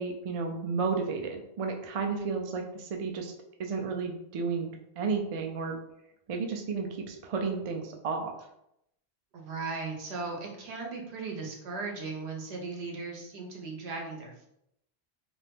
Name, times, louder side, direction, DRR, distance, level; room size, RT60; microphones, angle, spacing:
voice 1, 0.0-3.3 3.6-4.7 5.0-5.8 6.3-8.3, right 5 dB, 60° right, 2 dB, 0.3 m, -32 dB
voice 2, 9.3-14.5, right 4 dB, 80° right, 0 dB, 1.0 m, -37 dB
2.5 x 2.5 x 3.4 m, 0.79 s
omnidirectional pair, 1.1 m